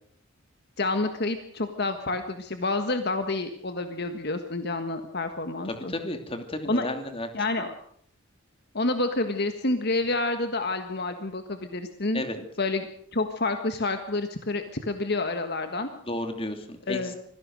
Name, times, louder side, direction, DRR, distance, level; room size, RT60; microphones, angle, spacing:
voice 1, 0.8-5.9 6.6-6.9 7.3-7.7 8.7-12.3 12.6-15.9 16.9-17.1, left 2 dB, 55° left, 7 dB, 1.5 m, -28 dB
voice 2, 5.6-7.3 12.1-12.4 16.1-17.2, left 1 dB, 30° left, 6 dB, 2.7 m, -32 dB
25.0 x 16.5 x 6.4 m, 0.64 s
head